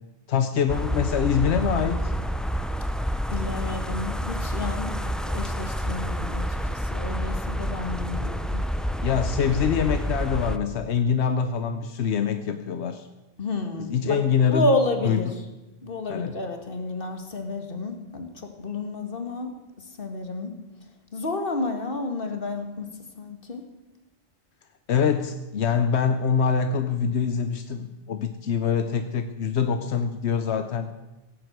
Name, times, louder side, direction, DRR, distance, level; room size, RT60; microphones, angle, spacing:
voice 1, 0.3-2.1 9.0-13.1 13.8-14.6 15.0-15.3 16.1-16.3 24.9-30.9, left 7 dB, 85° left, 9 dB, 1.0 m, -24 dB
sound 1, 0.7-10.6, equal, ahead, 0.5 m, -28 dB
voice 2, 3.3-8.7 13.4-14.2 14.4-15.4 15.8-19.5 20.0-20.6 21.1-22.9 23.2-23.6, left 2 dB, 55° left, 5 dB, 1.9 m, -30 dB
17.0 x 7.8 x 8.0 m, 1.0 s
omnidirectional pair, 1.1 m